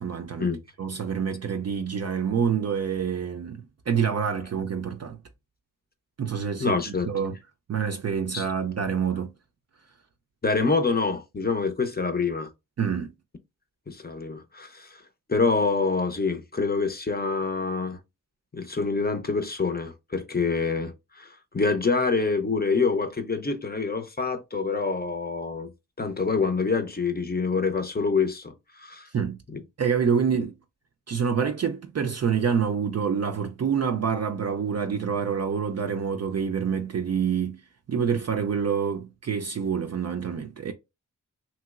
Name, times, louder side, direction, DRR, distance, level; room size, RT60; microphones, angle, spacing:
voice 1, 0.0-0.5 0.8-5.2 6.2-7.4 7.7-9.3 12.8-13.1 29.1-29.4 29.8-30.5 31.1-37.6 37.9-40.7, right 7 dB, 50° right, 0.4 m, -27 dB
voice 2, 6.6-7.1 8.3-8.5 10.4-12.5 13.9-15.0 15.3-18.0 18.5-25.7 26.0-29.1 29.5-29.6, left 4 dB, 30° left, 0.6 m, -26 dB
3.0 x 2.9 x 2.4 m
cardioid pair, 45°, 33 cm